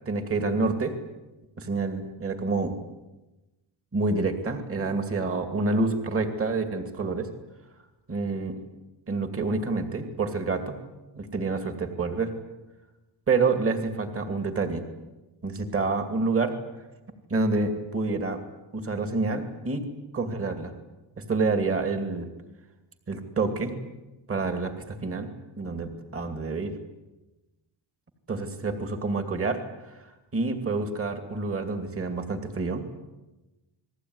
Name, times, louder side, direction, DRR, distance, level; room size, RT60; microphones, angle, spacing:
voice 1, 0.1-1.0 1.6-2.7 3.9-7.3 8.1-8.6 9.1-10.7 11.2-12.3 13.3-14.8 15.4-16.6 17.3-18.4 18.7-19.9 20.1-20.7 21.3-22.3 23.1-23.8 24.3-25.3 25.6-26.7 28.3-30.0 30.3-32.8, right 3 dB, 30° right, 7 dB, 2.6 m, -28 dB
29.0 x 20.5 x 9.7 m, 1.1 s
cardioid pair, 175°, 48 cm